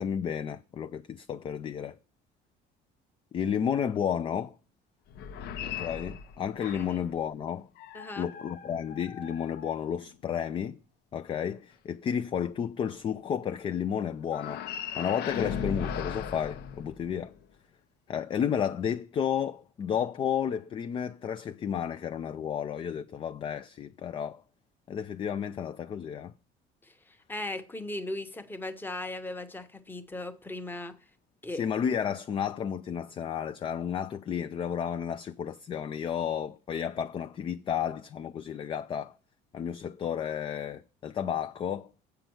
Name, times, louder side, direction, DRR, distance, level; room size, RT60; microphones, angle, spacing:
voice 1, 0.0-2.0 3.3-4.5 5.6-7.7 8.2-10.8 11.1-14.6 15.0-17.3 18.1-24.4 24.9-26.3 31.5-39.1 39.5-41.9, left 8 dB, 30° left, 0.4 m, -32 dB
sound 1, 5.1-7.1 7.8-10.2 14.3-17.4, left 7 dB, 65° left, 0.8 m, -38 dB
voice 2, 7.9-8.3 26.8-31.0 31.4-31.6, left 2 dB, 10° left, 0.9 m, -38 dB
8.0 x 5.7 x 7.7 m
cardioid pair, 145°, 18 cm